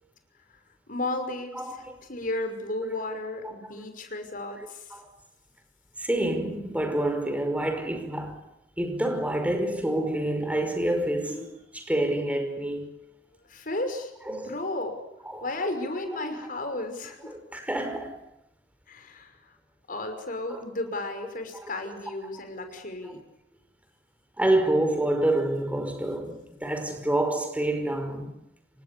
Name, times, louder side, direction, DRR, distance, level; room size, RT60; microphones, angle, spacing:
voice 1, 0.9-4.9 13.5-15.0 15.4-17.4 18.9-19.4 19.9-23.2, left 2 dB, 50° left, 5.8 m, -34 dB
voice 2, 1.5-2.0 2.8-3.0 3.4-3.5 4.9-5.1 6.0-8.5 8.8-12.9 14.3-14.6 15.3-15.5 16.1-16.5 17.3-18.3 20.5-20.6 21.6-21.7 22.5-22.7 24.4-28.4, right 1 dB, 10° right, 5.3 m, -28 dB
28.5 x 25.0 x 7.1 m
head